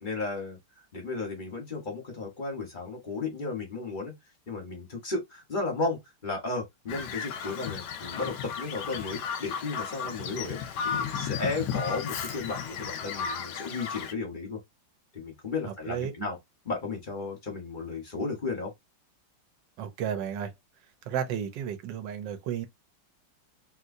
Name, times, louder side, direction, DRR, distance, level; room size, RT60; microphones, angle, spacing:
voice 1, 0.0-0.6 0.9-4.1 4.5-10.6 10.8-14.6 15.1-16.4 16.7-18.7, left 3 dB, 35° left, 0.8 m, -34 dB
Bird vocalization bird call bird song, 6.9-14.1, left 7 dB, 70° left, 1.1 m, -34 dB
voice 2, 15.7-16.3 19.8-20.5 21.1-22.7, right 9 dB, 70° right, 1.4 m, -33 dB
3.0 x 2.9 x 2.6 m
omnidirectional pair, 2.1 m